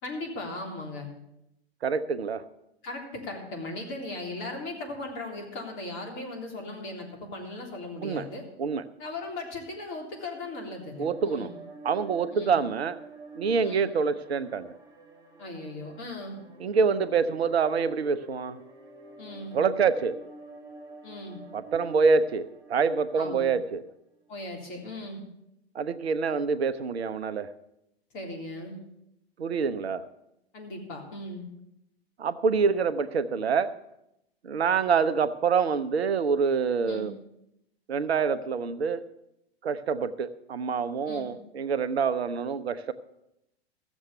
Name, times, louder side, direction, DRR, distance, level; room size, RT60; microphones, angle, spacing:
voice 1, 0.0-1.1 2.8-8.4 9.0-11.6 12.3-12.6 13.6-13.9 15.4-16.4 19.2-19.6 21.0-21.4 23.1-23.5 24.3-25.2 28.1-28.8 30.5-31.5 36.8-37.1 41.1-41.3, left 2 dB, 40° left, 1 dB, 3.5 m, -38 dB
voice 2, 1.8-2.4 8.0-8.3 8.6-8.8 11.0-11.5 11.8-13.0 13.4-14.8 16.6-18.6 19.5-20.2 21.5-23.8 25.7-27.5 29.4-30.0 32.2-33.7 34.4-37.1 37.9-39.1 39.6-42.9, right 5 dB, 75° right, 13 dB, 0.8 m, -26 dB
sound 1, 10.4-23.8, right 2 dB, 10° right, 1.9 m, -48 dB
15.5 x 7.2 x 6.7 m, 0.84 s
figure-of-eight pair, 105°, 32 cm